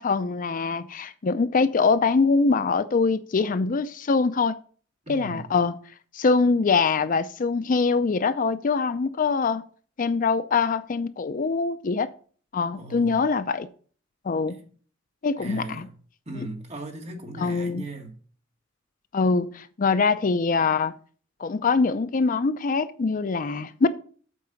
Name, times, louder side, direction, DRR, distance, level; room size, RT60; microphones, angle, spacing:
voice 1, 0.0-4.6 5.1-5.7 6.1-9.6 10.0-12.1 12.5-13.7 14.2-14.6 15.2-15.9 16.3-16.5 17.4-17.8 19.1-20.9 21.4-23.9, left 4 dB, 45° left, 0.4 m, -23 dB
voice 2, 5.1-5.5 12.8-13.3 14.5-14.7 15.4-16.0 16.3-18.2, right 2 dB, 35° right, 1.9 m, -38 dB
8.3 x 4.7 x 6.8 m
head